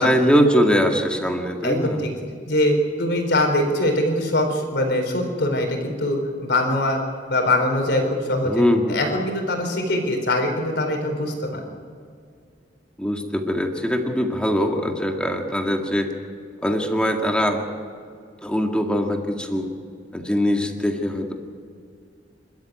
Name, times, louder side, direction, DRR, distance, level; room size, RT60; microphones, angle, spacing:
voice 1, 0.0-2.0 8.4-8.9 13.0-16.1 16.6-17.6 18.4-19.7 20.1-21.3, equal, 5° left, 2 dB, 2.0 m, -22 dB
voice 2, 1.6-2.1 2.5-7.0 7.3-8.6 8.9-11.6, left 1 dB, 65° left, 4 dB, 4.2 m, -22 dB
27.0 x 13.0 x 9.3 m, 2.2 s
head